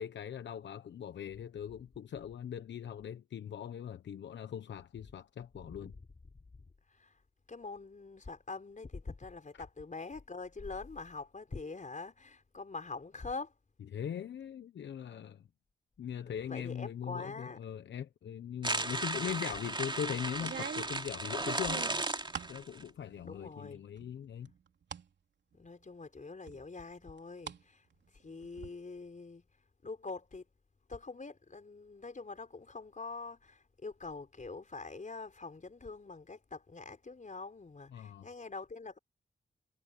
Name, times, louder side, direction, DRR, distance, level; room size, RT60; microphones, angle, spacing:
voice 1, 0.0-5.9 13.9-15.4 16.0-21.9 22.5-24.5 37.9-38.3, left 9 dB, 80° left, 1.1 m, -40 dB
voice 2, 6.9-7.2 7.5-13.5 16.4-17.6 23.2-23.8 25.5-27.9 28.1-29.4 29.8-30.5 30.9-39.0, left 3 dB, 45° left, 4.6 m, -44 dB
sound 1, 18.6-22.8, right 2 dB, 25° right, 3.4 m, -35 dB
sound 2, 19.3-19.7 20.3-22.6 23.0-23.6 24.0-25.1 25.5-25.6 26.5-27.6 27.9-28.7, right 7 dB, 75° right, 3.3 m, -45 dB
cardioid pair, 45°, 18 cm